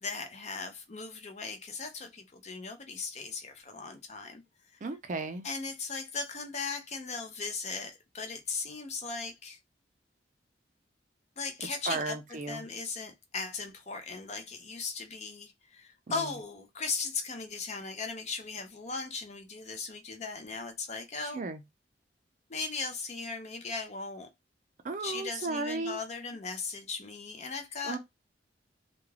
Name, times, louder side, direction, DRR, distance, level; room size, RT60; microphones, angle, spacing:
voice 1, 0.0-4.8 5.4-9.6 11.4-21.4 22.5-24.3 25.0-28.0, left 4 dB, 40° left, 0.5 m, -38 dB
voice 2, 4.8-5.5 11.9-12.6 16.1-16.3 21.2-21.6 24.8-26.0 27.8-28.0, right 3 dB, 45° right, 0.4 m, -35 dB
2.3 x 2.3 x 3.1 m
head